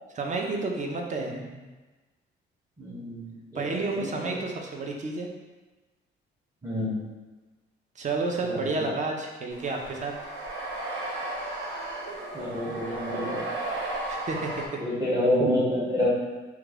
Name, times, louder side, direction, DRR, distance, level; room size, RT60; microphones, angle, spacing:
voice 1, 0.1-1.4 3.5-5.3 8.0-10.1 14.1-14.8, right 3 dB, 40° right, 1 dB, 0.6 m, -30 dB
voice 2, 2.8-4.3 6.6-7.0 8.4-8.9 12.3-13.6 14.8-16.1, left 1 dB, 15° right, -9 dB, 0.9 m, -28 dB
sound 1, 9.5-14.7, right 2 dB, 90° right, 0.8 m, -34 dB
3.0 x 2.3 x 3.6 m, 1.2 s
cardioid pair, 90°, 20 cm